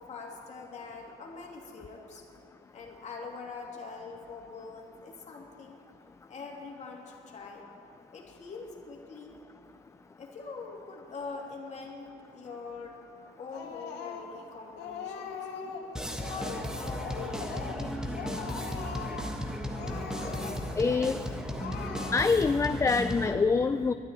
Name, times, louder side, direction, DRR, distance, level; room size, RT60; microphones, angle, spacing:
voice 1, 0.0-2.3 2.7-5.8 6.3-7.7 8.1-9.4 10.2-13.0 13.4-15.5 16.1-18.3, left 4 dB, 45° left, 0 dB, 2.8 m, -43 dB
Speech, 13.5-14.4 14.8-15.9 16.2-16.7 17.0-17.9 18.1-19.3 19.7-20.8 21.1-21.3 21.6-22.6, left 5 dB, 85° left, 2.0 m, -40 dB
sound 1, 16.0-23.3, equal, 5° right, 1.4 m, -35 dB
voice 2, 20.8-21.2 22.1-23.9, left 4 dB, 15° left, 10 dB, 0.3 m, -25 dB
12.5 x 9.8 x 9.6 m, 2.6 s
cardioid pair, 110°, 17 cm